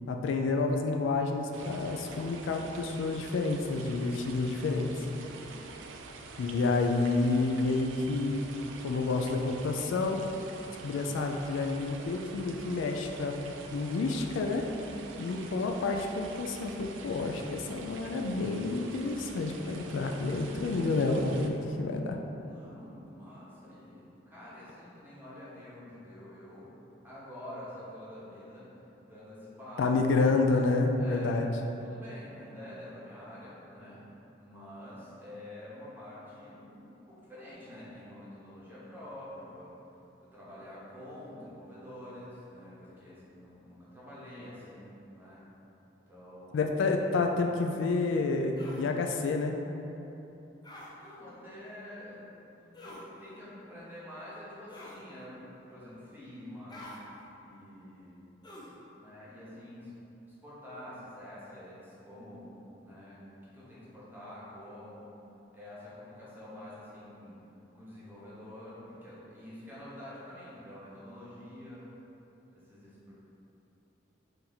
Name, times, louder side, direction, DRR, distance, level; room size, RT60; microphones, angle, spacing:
voice 1, 0.1-4.9 6.4-8.4 8.8-10.2 10.8-14.7 15.2-22.2 29.8-31.5 46.5-49.6, left 3 dB, 80° left, 3 dB, 0.3 m, -29 dB
sound 1, 1.5-21.5, right 3 dB, 90° right, 0.4 m, -46 dB
voice 2, 22.4-26.7 27.0-29.9 31.0-31.3 31.6-34.0 34.4-39.7 40.2-45.5 46.1-46.7 50.9-55.4 55.7-56.9 57.3-58.2 59.0-65.1 65.5-67.4 67.7-71.9 72.5-73.1, left 1 dB, 10° right, -9 dB, 1.0 m, -47 dB
sound 2, 48.6-48.8 50.6-50.9 52.7-53.1 54.7-55.0 56.7-57.0 58.4-58.8, left 1 dB, 25° left, 0.5 m, -47 dB
4.4 x 2.6 x 3.9 m, 3.0 s
head